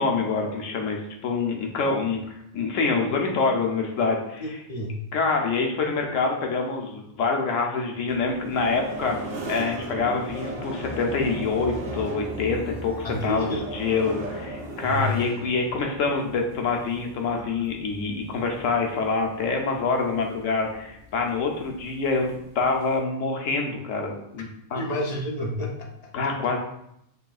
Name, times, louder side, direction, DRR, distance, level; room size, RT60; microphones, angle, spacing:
voice 1, 0.0-4.6 5.1-9.2 9.4-22.3 22.5-24.8 26.1-26.6, left 4 dB, 80° left, 2 dB, 1.1 m, -26 dB
voice 2, 4.4-5.0 13.0-13.6 14.8-15.2 24.4-24.5 24.7-26.1, left 1 dB, 45° left, 1 dB, 0.5 m, -30 dB
sound 1, 8.1-23.0, right 1 dB, 90° right, 1.3 m, -38 dB
5.3 x 3.1 x 2.4 m, 0.77 s
omnidirectional pair, 1.3 m